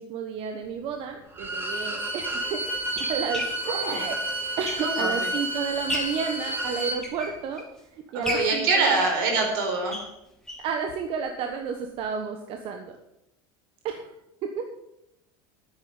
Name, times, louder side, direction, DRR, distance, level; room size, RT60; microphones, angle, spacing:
voice 1, 0.0-2.6 3.0-4.1 4.6-7.6 8.1-9.1 10.6-13.0 13.8-14.1 14.6-14.7, right 6 dB, 55° right, 5 dB, 1.3 m, -31 dB
sound 1, 1.3-1.5 2.3-5.2 5.6-6.3 6.8-7.8 8.2-10.8 11.1-11.2 11.5-11.6 12.0-12.1, left 1 dB, 5° left, 2.3 m, -36 dB
Bowed string instrument, 1.3-7.0, right 1 dB, 20° right, 2.8 m, -30 dB
voice 2, 3.7-4.0 4.8-5.1 8.1-10.0, right 3 dB, 80° right, 2 dB, 4.5 m, -24 dB
9.6 x 8.8 x 7.3 m, 0.85 s
supercardioid pair, 110°, 11 cm